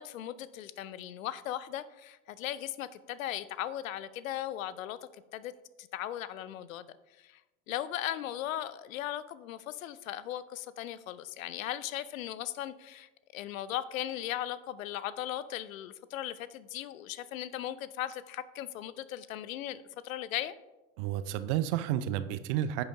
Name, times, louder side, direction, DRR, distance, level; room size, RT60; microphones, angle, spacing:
voice 1, 0.0-5.0 5.3-5.5 5.8-6.9 7.2-7.4 7.7-20.5, left 12 dB, 70° left, 16 dB, 0.6 m, -38 dB
voice 2, 21.0-22.8, right 11 dB, 55° right, 12 dB, 0.7 m, -31 dB
10.0 x 6.2 x 3.6 m, 1.1 s
figure-of-eight pair, 70°, 42 cm